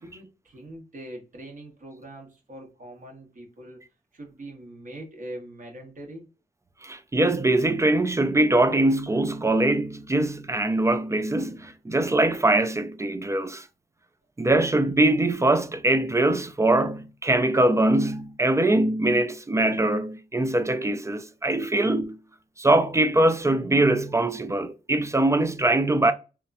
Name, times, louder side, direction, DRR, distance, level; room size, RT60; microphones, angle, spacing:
voice 1, 0.0-3.8 4.1-6.3, right 1 dB, 50° right, 1.0 m, -42 dB
voice 2, 6.8-13.7 14.4-22.2 22.6-26.1, right 2 dB, 15° right, 0.3 m, -22 dB
2.7 x 2.3 x 2.5 m
cardioid pair, 60°, 18 cm